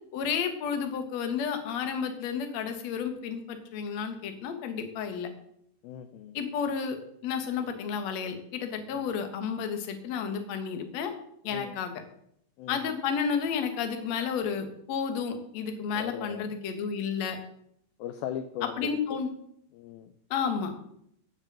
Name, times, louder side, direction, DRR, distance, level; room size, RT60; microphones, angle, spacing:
voice 1, 0.1-5.3 6.3-7.0 7.2-11.1 11.4-11.9 12.7-17.4 18.8-19.3 20.3-20.7, left 6 dB, 55° left, 6 dB, 2.1 m, -31 dB
voice 2, 5.8-6.4 8.9-9.0 11.5-11.7 12.6-13.0 15.9-16.4 18.0-19.2 19.7-20.1, left 10 dB, 80° left, 8 dB, 2.3 m, -39 dB
15.5 x 5.5 x 7.5 m, 0.71 s
omnidirectional pair, 4.8 m